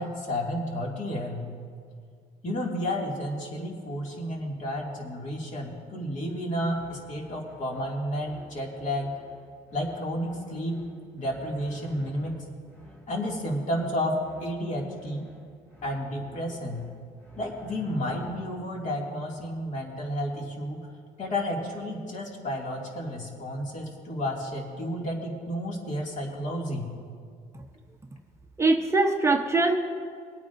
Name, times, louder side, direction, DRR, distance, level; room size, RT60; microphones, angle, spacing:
voice 1, 0.0-1.4 2.4-9.1 9.7-10.8 11.1-12.4 13.1-15.3 15.8-16.8 17.4-20.9 21.2-26.9, equal, 45° left, -1 dB, 2.4 m, -31 dB
sound 1, 6.7-18.7, left 1 dB, 10° left, 2.6 m, -50 dB
voice 2, 28.6-29.8, right 3 dB, 15° right, 3 dB, 0.7 m, -22 dB
23.0 x 9.0 x 2.6 m, 2.2 s
cardioid pair, 110°, 17 cm